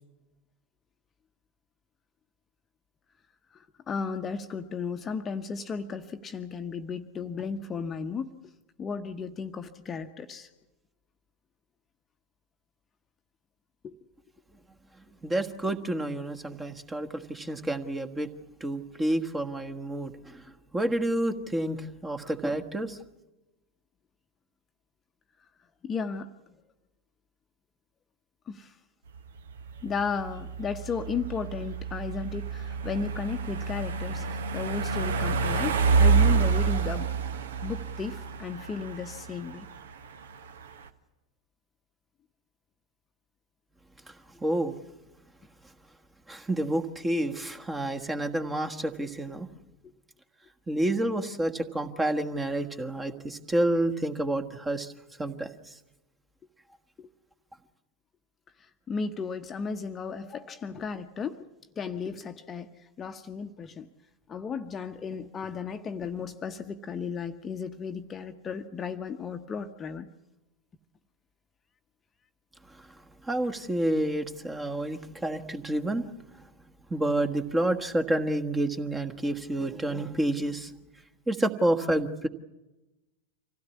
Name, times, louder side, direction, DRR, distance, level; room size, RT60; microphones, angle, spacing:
voice 1, 3.5-8.3 8.8-10.5 13.8-14.0 25.8-26.3 28.5-28.7 29.8-37.1 37.6-39.7 57.0-57.1 58.9-61.4 61.8-62.7 63.0-63.9 64.3-70.1, left 5 dB, 20° left, 7 dB, 1.0 m, -34 dB
voice 2, 15.2-18.3 18.6-20.4 20.7-23.0 44.1-44.8 46.3-49.5 50.7-54.9 55.2-55.5 73.3-76.1 76.9-80.7 81.3-82.3, right 1 dB, 10° right, 7 dB, 1.5 m, -29 dB
sound 1, 29.2-40.9, right 5 dB, 60° right, 1.3 m, -28 dB
26.0 x 16.5 x 8.5 m, 1.0 s
figure-of-eight pair, 90°, 0 cm